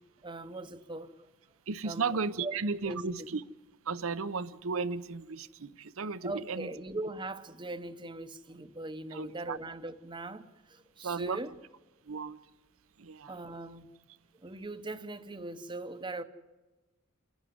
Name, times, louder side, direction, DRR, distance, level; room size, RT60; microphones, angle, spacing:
voice 1, 0.2-1.1 1.8-2.1 2.4-3.3 6.2-11.5 13.3-13.9 14.4-16.2, right 2 dB, 20° right, 0.8 m, -40 dB
voice 2, 1.7-3.4 3.9-6.7 9.1-9.6 11.0-11.4 12.1-12.4 13.0-13.3, right 4 dB, 65° right, 0.8 m, -34 dB
29.0 x 11.0 x 9.6 m
head